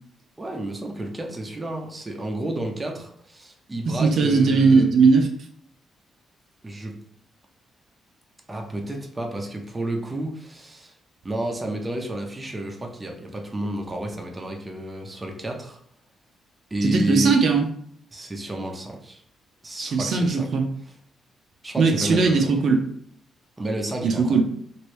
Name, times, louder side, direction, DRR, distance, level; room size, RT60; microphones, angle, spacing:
voice 1, 0.4-4.9 6.6-7.0 8.5-10.9 11.2-15.8 16.7-17.3 18.1-19.2 19.6-20.5 21.6-22.5 23.6-24.4, right 1 dB, 15° right, 1 dB, 0.5 m, -31 dB
voice 2, 3.9-5.3 16.8-17.7 19.8-20.7 21.8-22.8 24.0-24.4, right 4 dB, 60° right, 3 dB, 0.5 m, -19 dB
3.0 x 2.6 x 3.1 m, 0.65 s
cardioid pair, 115°, 0 cm